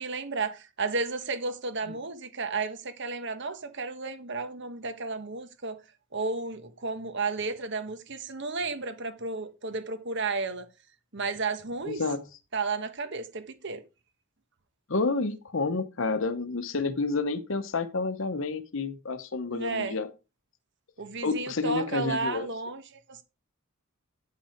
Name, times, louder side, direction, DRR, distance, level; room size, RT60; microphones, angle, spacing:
voice 1, 0.0-5.8 6.1-10.7 11.1-12.0 12.5-13.8 19.5-20.0 21.0-23.2, right 3 dB, 55° right, 1.2 m, -33 dB
voice 2, 11.9-12.2 14.9-20.1 21.2-22.5, left 3 dB, 60° left, 0.9 m, -29 dB
9.6 x 5.7 x 4.5 m
head